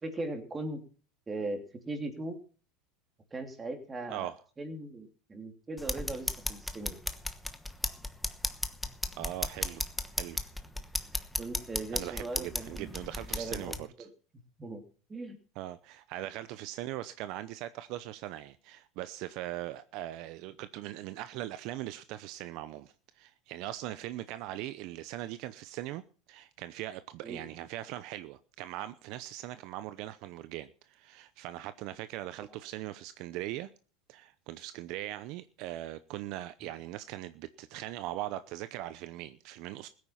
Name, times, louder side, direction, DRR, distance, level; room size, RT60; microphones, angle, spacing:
voice 1, 0.0-0.8 1.3-2.4 3.3-4.3 4.6-7.0 11.4-12.9 13.3-14.1 14.6-14.8 15.1-15.4 27.2-27.4 36.6-36.7, right 2 dB, 15° right, 3.0 m, -39 dB
sound 1, 5.8-13.8, left 1 dB, 5° left, 1.1 m, -36 dB
voice 2, 9.2-9.9 10.2-10.4 11.9-13.9 15.6-26.0 26.3-33.7 34.1-39.9, right 14 dB, 55° right, 0.7 m, -40 dB
16.0 x 9.4 x 5.7 m
supercardioid pair, 125°, 0 cm